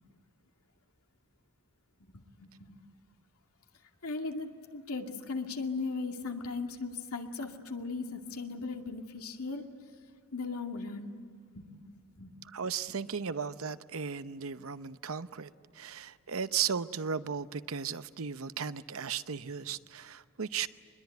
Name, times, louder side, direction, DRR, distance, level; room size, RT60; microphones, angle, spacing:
voice 1, 2.4-2.7 4.0-9.6 10.3-11.0 11.6-11.7 12.2-12.3, left 4 dB, 85° left, 2.3 m, -37 dB
voice 2, 12.4-20.7, right 7 dB, 70° right, 0.8 m, -36 dB
25.0 x 21.5 x 9.2 m
head